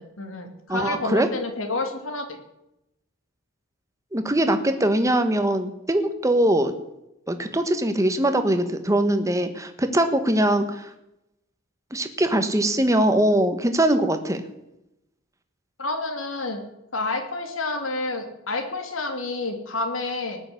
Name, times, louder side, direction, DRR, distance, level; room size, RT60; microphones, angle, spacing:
voice 1, 0.0-2.4 15.8-16.6 16.9-20.4, left 2 dB, 75° left, 5 dB, 2.8 m, -29 dB
voice 2, 0.7-1.3 4.1-6.7 7.3-10.9 11.9-14.4, right 1 dB, 15° right, 8 dB, 1.4 m, -22 dB
19.0 x 7.1 x 9.5 m, 0.88 s
head